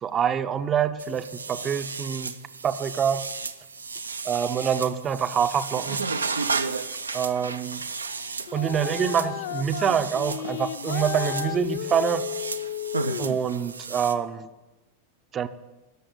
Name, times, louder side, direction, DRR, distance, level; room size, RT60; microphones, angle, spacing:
voice 1, 0.0-2.3 2.6-3.2 4.2-6.0 7.1-7.8 8.5-12.3 13.2-14.5 15.3-15.5, right 8 dB, 25° right, 12 dB, 0.7 m, -26 dB
sound 1, 1.0-14.1, right 4 dB, 75° right, 0.7 m, -33 dB
sound 2, 8.5-13.5, left 13 dB, 55° left, 0.4 m, -33 dB
14.0 x 7.0 x 9.0 m, 1.1 s
figure-of-eight pair, 90°, 0 cm